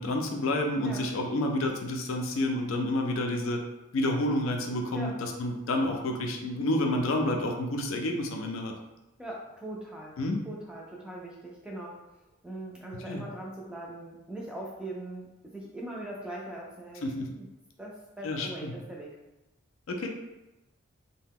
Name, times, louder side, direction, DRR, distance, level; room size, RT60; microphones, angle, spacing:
voice 1, 0.0-3.6 3.9-8.7 10.2-10.4 12.9-13.2 17.0-17.3 18.2-18.7 19.9-20.1, left 1 dB, 65° left, 3 dB, 0.4 m, -29 dB
voice 2, 9.2-10.2 10.5-12.0 12.4-17.1 17.4-17.5 17.8-19.1, right 1 dB, 5° right, -3 dB, 0.4 m, -41 dB
2.8 x 2.1 x 3.5 m, 0.98 s
head